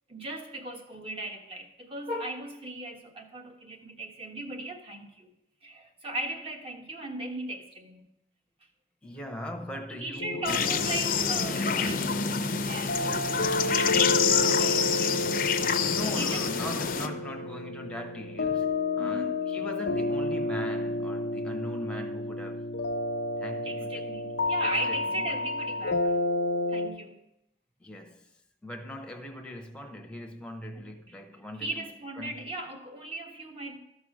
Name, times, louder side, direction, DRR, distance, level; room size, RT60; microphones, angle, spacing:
voice 1, 0.1-5.3 5.6-8.1 9.9-16.5 17.0-17.2 19.0-19.3 23.6-26.2 26.7-27.2 31.6-33.8, right 1 dB, 35° right, 1.2 m, -38 dB
voice 2, 9.0-10.9 15.8-22.7 23.4-24.0 24.6-25.2 27.8-28.3 28.6-31.9 32.2-32.5, left 1 dB, 5° left, 0.8 m, -40 dB
sound 1, 10.2-26.9, left 2 dB, 85° left, 0.8 m, -31 dB
sound 2, 10.5-17.1, left 6 dB, 50° left, 0.6 m, -27 dB
13.5 x 4.8 x 6.3 m
head